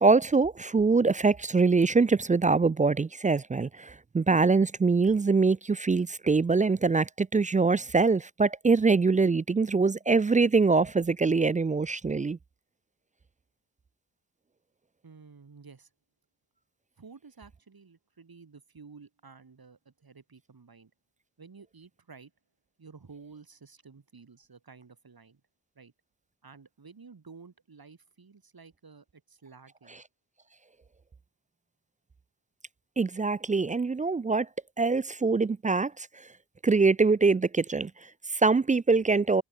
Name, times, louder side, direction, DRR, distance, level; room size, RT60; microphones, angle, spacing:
voice 1, 0.0-12.4 33.0-34.5 34.8-36.3 36.6-39.4, right 4 dB, 20° right, 0.3 m, -24 dB
voice 2, 15.0-15.9 17.0-20.9 21.4-22.3 22.8-25.4 25.8-25.9 26.4-30.0, right 5 dB, 60° right, 5.8 m, -52 dB
cardioid pair, 50°, 41 cm